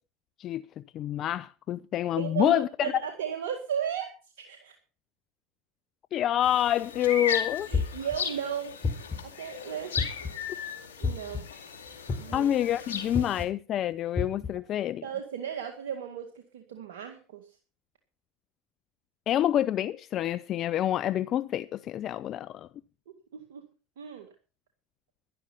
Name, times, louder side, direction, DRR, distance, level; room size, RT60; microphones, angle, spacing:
voice 1, 0.4-2.9 6.1-7.7 12.3-15.0 19.3-22.7, left 11 dB, 50° left, 0.5 m, -27 dB
voice 2, 2.2-4.7 7.7-8.8 9.2-9.9 11.0-11.5 12.2-12.5 15.0-17.5 23.3-23.6 24.0-24.3, right 8 dB, 80° right, 2.0 m, -35 dB
sound 1, 6.4-13.4, left 6 dB, 90° left, 2.3 m, -36 dB
sound 2, 7.7-8.2 8.8-9.3 10.0-10.4 11.0-11.4 12.1-12.5 13.1-13.5 14.2-14.5, left 4 dB, 30° left, 3.2 m, -29 dB
12.0 x 11.5 x 5.6 m
hypercardioid pair, 85°, 0 cm